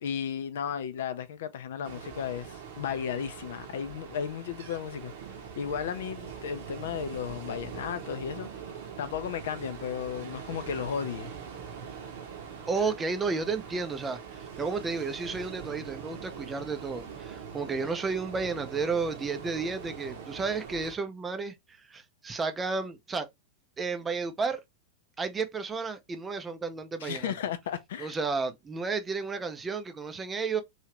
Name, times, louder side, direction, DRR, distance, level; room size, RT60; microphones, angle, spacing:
voice 1, 0.0-5.1 5.6-8.5 9.0-11.3 27.0-28.1, left 8 dB, 60° left, 0.5 m, -34 dB
Ocean, 1.8-21.0, right 7 dB, 55° right, 0.9 m, -43 dB
voice 2, 12.7-21.5 21.9-23.3 23.8-24.6 25.2-27.3 28.0-30.6, right 4 dB, 15° right, 0.6 m, -32 dB
3.2 x 2.7 x 3.0 m
figure-of-eight pair, 90°, 0 cm